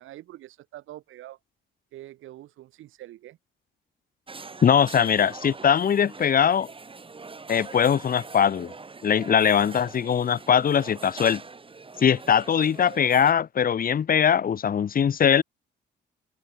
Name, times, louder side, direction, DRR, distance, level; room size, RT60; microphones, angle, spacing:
voice 1, 0.0-1.4 1.9-3.4, right 14 dB, 85° right, 7.1 m, -45 dB
sound 1, 4.3-13.3, right 4 dB, 25° right, 3.5 m, -43 dB
voice 2, 4.6-6.7 7.5-8.7 9.0-11.4 12.0-15.4, left 8 dB, 45° left, 1.2 m, -21 dB
cardioid pair, 90°, 20 cm